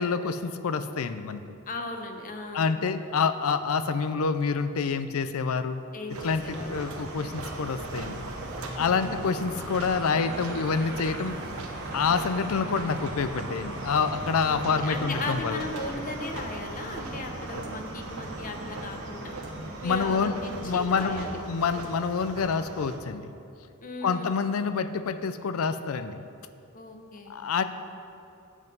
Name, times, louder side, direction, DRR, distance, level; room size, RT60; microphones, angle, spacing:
voice 1, 0.0-1.4 2.5-5.8 6.2-8.2 8.8-11.3 11.9-15.6 19.8-23.3 24.0-26.2 27.3-27.6, left 5 dB, 80° left, 11 dB, 0.5 m, -27 dB
voice 2, 1.7-2.7 5.9-6.8 8.8-9.3 14.5-19.3 19.8-21.4 23.8-24.3 26.7-27.4, left 2 dB, 40° left, 4 dB, 0.8 m, -37 dB
sound 1, 6.1-23.0, right 2 dB, 85° right, 1.0 m, -40 dB
sound 2, 6.5-21.3, right 1 dB, 60° right, 1.1 m, -40 dB
8.0 x 7.4 x 5.4 m, 2.6 s
head